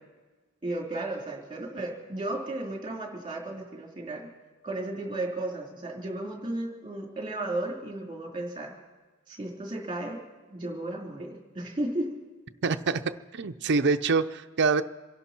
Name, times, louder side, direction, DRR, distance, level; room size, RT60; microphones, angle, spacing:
voice 1, 0.6-4.3 4.6-8.8 9.3-10.2 10.5-12.1, right 2 dB, 20° right, -1 dB, 3.6 m, -34 dB
voice 2, 12.6-14.8, right 4 dB, 55° right, 8 dB, 0.6 m, -25 dB
27.0 x 11.5 x 4.5 m, 1.3 s
head